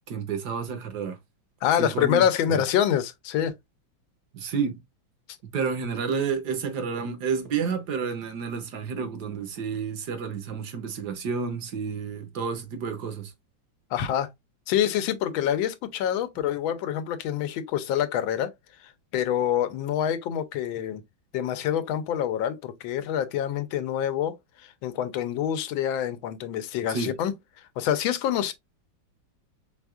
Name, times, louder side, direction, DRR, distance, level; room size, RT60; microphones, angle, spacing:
voice 1, 0.1-1.2 1.8-2.6 4.3-4.8 5.5-13.3 26.9-27.1, right 6 dB, 65° right, 1.2 m, -30 dB
voice 2, 1.6-3.5 13.9-14.3 14.7-18.5 19.1-21.0 21.3-24.4 24.6-27.3 27.8-28.5, left 10 dB, 85° left, 1.4 m, -26 dB
4.8 x 3.5 x 2.3 m
omnidirectional pair, 2.1 m